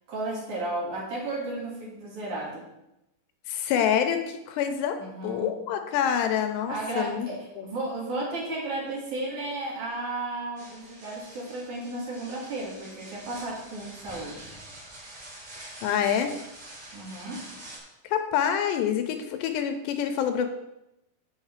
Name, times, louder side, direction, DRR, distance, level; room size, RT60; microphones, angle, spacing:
voice 1, 0.1-2.7 5.0-5.6 6.7-14.5 16.9-17.4, right 2 dB, 55° right, -4 dB, 2.9 m, -34 dB
voice 2, 3.5-7.3 7.6-7.7 15.8-16.3 18.0-20.5, left 8 dB, 80° left, 7 dB, 2.8 m, -26 dB
sound 1, 10.6-17.8, right 1 dB, 35° right, 2.9 m, -46 dB
7.3 x 5.2 x 7.3 m, 0.89 s
omnidirectional pair, 5.0 m